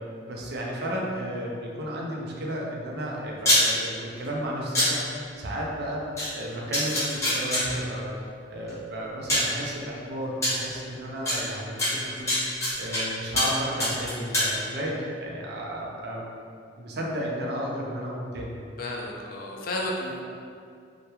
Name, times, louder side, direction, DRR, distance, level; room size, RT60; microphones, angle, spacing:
voice 1, 0.0-6.1 6.3-8.1 8.5-12.5 12.8-16.3 16.8-18.6, equal, 60° right, -2 dB, 0.4 m, -33 dB
sound 1, 3.4-3.6 4.7-4.9 6.2-6.3 6.7-7.6 8.7-8.8 9.3-9.5 10.4-10.5 11.3-11.4 11.8-13.0 13.4-13.5 13.8-14.5, left 1 dB, 15° left, 0.8 m, -23 dB
voice 2, 18.8-20.2, left 1 dB, 55° left, -1 dB, 0.4 m, -32 dB
2.9 x 2.1 x 2.2 m, 2.3 s
head